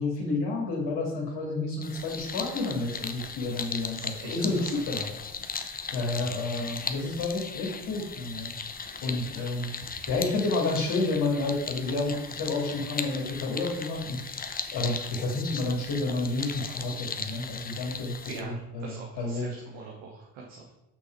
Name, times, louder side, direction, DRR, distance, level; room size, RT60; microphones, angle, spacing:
voice 1, 0.0-5.1 5.5-8.5 9.0-9.8 10.1-14.4 14.7-18.2 18.4-19.6, left 2 dB, 60° left, -2 dB, 2.3 m, -30 dB
sound 1, 1.8-18.4, left 5 dB, 20° left, 0.7 m, -37 dB
voice 2, 4.0-4.7 5.6-5.9 9.3-9.5 9.9-10.1 18.3-20.7, right 4 dB, 80° right, -1 dB, 1.4 m, -44 dB
6.0 x 5.8 x 4.6 m, 0.88 s
supercardioid pair, 75°, 45 cm